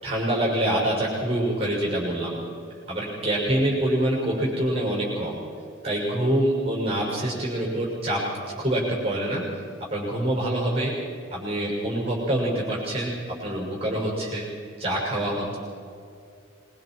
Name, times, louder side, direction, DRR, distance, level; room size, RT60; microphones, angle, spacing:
voice 1, 0.0-2.4 2.9-5.4 5.8-8.2 8.6-9.4 9.9-10.9 11.3-13.1 13.4-14.4 14.8-15.6, right 1 dB, 30° right, -3 dB, 6.1 m, -25 dB
24.5 x 23.0 x 4.7 m, 2.4 s
head